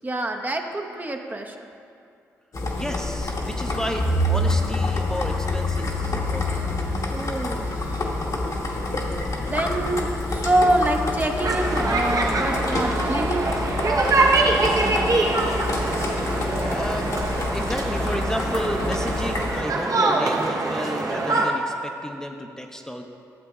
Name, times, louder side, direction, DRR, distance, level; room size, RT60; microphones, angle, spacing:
voice 1, 0.0-1.7 7.1-8.1 9.3-13.6, right 1 dB, 25° right, 3 dB, 0.8 m, -26 dB
sound 1, 2.5-19.6, left 2 dB, 50° left, 1.2 m, -27 dB
voice 2, 2.7-6.7 16.2-23.0, equal, 10° left, 3 dB, 0.7 m, -32 dB
sound 2, 8.0-19.2, right 1 dB, 80° right, 2.1 m, -45 dB
sound 3, 11.4-21.5, right 3 dB, 55° right, 1.0 m, -24 dB
12.0 x 7.5 x 2.4 m, 2.4 s
hypercardioid pair, 40°, 7 cm